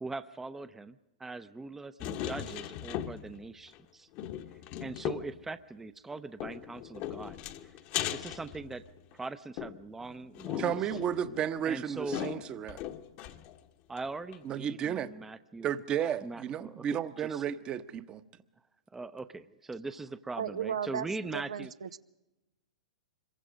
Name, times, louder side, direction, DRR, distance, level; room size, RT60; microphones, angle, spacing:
voice 1, 0.0-4.1 4.8-7.4 8.1-8.8 9.1-10.7 11.7-12.3 13.9-15.7 16.2-17.4 18.9-21.7, right 3 dB, 10° right, 12 dB, 0.7 m, -41 dB
sound 1, 2.0-3.5 3.7-3.8 4.2-5.4 6.4-9.1 9.6-13.6 14.0-14.1 14.3-14.4, left 11 dB, 40° left, 1.2 m, -38 dB
voice 2, 10.6-12.8 14.4-15.1 15.6-18.2, right 9 dB, 25° right, 13 dB, 1.0 m, -33 dB
voice 3, 20.4-21.1 21.3-22.0, right 8 dB, 75° right, 12 dB, 0.8 m, -35 dB
26.0 x 22.5 x 5.2 m, 0.99 s
hypercardioid pair, 115°, 3 cm